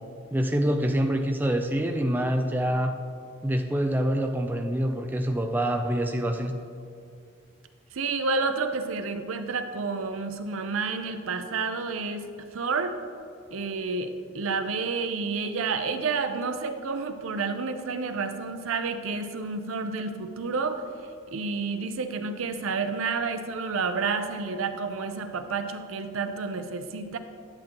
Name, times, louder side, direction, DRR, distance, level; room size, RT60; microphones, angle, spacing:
voice 1, 0.3-2.9 3.4-6.6, right 1 dB, 10° right, 4 dB, 0.3 m, -26 dB
voice 2, 7.9-12.2 12.5-13.0 13.5-20.8 21.3-27.2, right 4 dB, 85° right, 8 dB, 0.6 m, -30 dB
10.5 x 7.5 x 3.0 m, 2.3 s
head